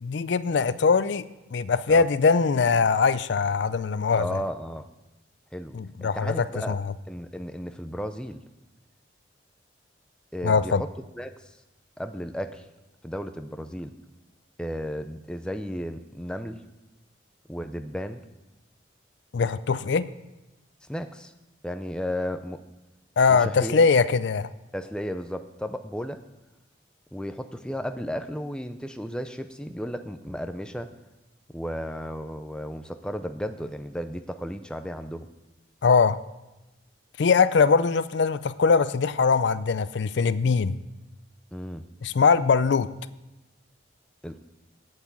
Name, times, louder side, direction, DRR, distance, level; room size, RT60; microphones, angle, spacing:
voice 1, 0.0-1.2 1.5-4.3 5.7-6.8 10.4-10.8 19.3-20.1 23.2-24.5 35.8-36.2 37.2-40.8 42.0-42.9, left 5 dB, 70° left, 15 dB, 0.4 m, -22 dB
voice 2, 4.2-4.9 5.5-6.8 7.1-8.4 10.3-10.9 11.2-11.6 12.0-12.7 13.0-13.9 14.6-16.6 17.5-18.2 20.8-21.3 21.6-22.6 23.3-23.8 24.7-26.2 27.1-30.9 31.5-35.3 41.5-41.8 44.2-44.4, equal, 5° left, 7 dB, 0.5 m, -34 dB
8.4 x 8.2 x 8.6 m, 1.0 s
head